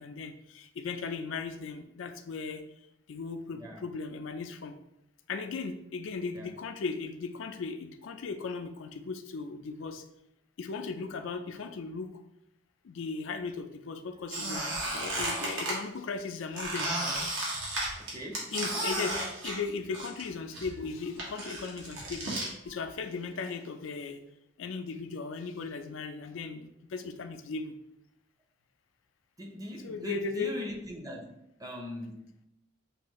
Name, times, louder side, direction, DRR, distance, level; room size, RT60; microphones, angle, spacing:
voice 1, 0.0-2.6 3.1-4.7 5.3-10.0 10.6-12.2 12.8-14.7 14.9-16.9 18.5-19.2 19.4-24.2 24.6-27.7 29.8-30.5, left 4 dB, 75° left, 7 dB, 0.4 m, -37 dB
Squeak, 14.3-15.8 16.6-20.3 20.5-22.5, right 1 dB, 80° right, 1.4 m, -33 dB
voice 2, 18.0-18.5 29.4-31.3 31.6-32.4, equal, 20° right, 0 dB, 0.7 m, -40 dB
6.3 x 2.5 x 3.0 m, 0.82 s
head